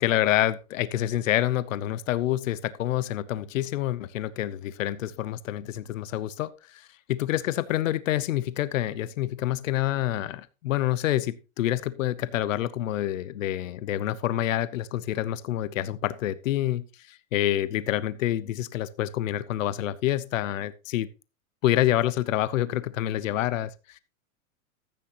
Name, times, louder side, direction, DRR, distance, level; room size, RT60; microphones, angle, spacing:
voice 1, 0.0-21.1 21.6-24.0, left 13 dB, 70° left, 16 dB, 0.9 m, -27 dB
14.0 x 8.8 x 3.0 m, 0.30 s
supercardioid pair, 175°, 41 cm